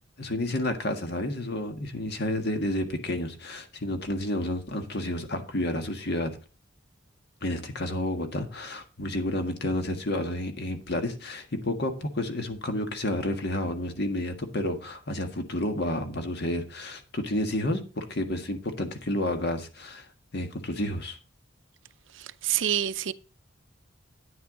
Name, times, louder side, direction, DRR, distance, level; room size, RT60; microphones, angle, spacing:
voice 1, 0.2-6.4 7.4-20.1 20.3-21.2, left 1 dB, 60° left, 1.6 m, -30 dB
voice 2, 22.2-23.1, right 10 dB, 75° right, 0.6 m, -27 dB
9.7 x 9.4 x 3.8 m
head